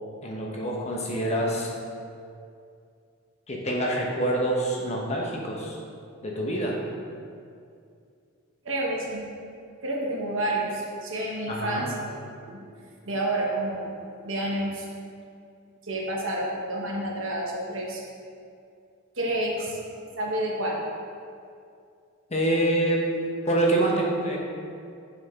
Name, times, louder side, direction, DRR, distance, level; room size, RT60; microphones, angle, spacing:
voice 1, 0.2-1.7 3.5-5.8 6.2-6.8 11.5-11.9 22.3-23.1 23.4-24.4, right 1 dB, 35° left, -2 dB, 1.0 m, -26 dB
voice 2, 8.6-9.2 9.8-12.6 13.0-13.9 14.2-14.9 15.8-18.0 19.2-19.8 20.2-20.8, right 1 dB, 65° right, -2 dB, 1.2 m, -29 dB
8.8 x 4.8 x 3.7 m, 2.4 s
head